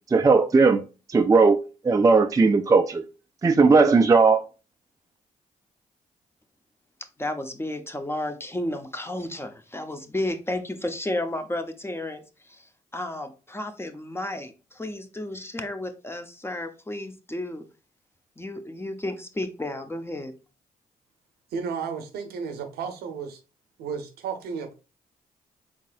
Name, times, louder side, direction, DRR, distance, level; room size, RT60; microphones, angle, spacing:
voice 1, 0.1-0.8 1.1-1.6 1.8-3.0 3.4-4.4, right 4 dB, 20° right, 0.4 m, -17 dB
voice 2, 7.2-17.7 18.4-20.3, left 1 dB, 15° left, 0.7 m, -32 dB
voice 3, 21.5-23.4 23.8-24.7, right 6 dB, 85° right, 0.7 m, -33 dB
3.9 x 3.6 x 2.4 m
supercardioid pair, 55°, 16 cm